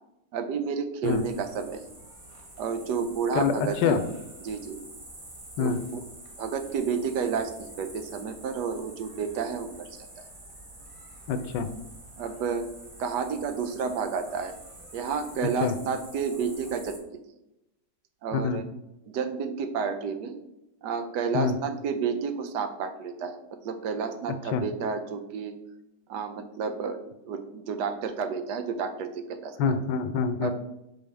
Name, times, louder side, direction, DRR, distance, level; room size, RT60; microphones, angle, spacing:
voice 1, 0.3-1.8 2.6-4.0 4.4-4.8 5.6-6.0 6.4-9.9 12.2-12.6 13.0-14.6 14.9-17.2 18.2-18.6 19.1-20.3 20.8-23.4 23.6-25.6 26.1-29.6 30.4-30.5, right 6 dB, 70° right, 8 dB, 1.2 m, -31 dB
sound 1, 1.0-17.0, right 1 dB, 25° right, 0.8 m, -47 dB
voice 2, 3.3-4.0 5.6-5.8 11.3-11.7 15.6-15.7 18.3-18.6 21.3-21.5 24.5-24.6 29.6-30.5, left 5 dB, 80° left, 9 dB, 1.2 m, -26 dB
5.7 x 5.3 x 3.4 m, 0.90 s
omnidirectional pair, 1.9 m